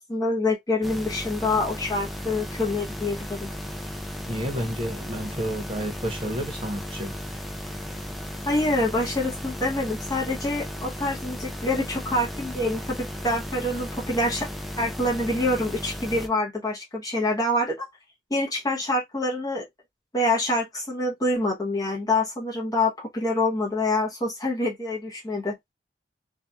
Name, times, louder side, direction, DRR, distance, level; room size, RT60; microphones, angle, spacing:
voice 1, 0.0-3.5 8.4-14.5 14.8-17.9 18.3-19.6 20.1-25.6, left 2 dB, 20° left, 0.8 m, -26 dB
sound 1, 0.8-16.3, equal, ahead, 0.5 m, -35 dB
voice 2, 4.3-7.1, equal, 30° right, 0.9 m, -30 dB
2.7 x 2.4 x 2.3 m
head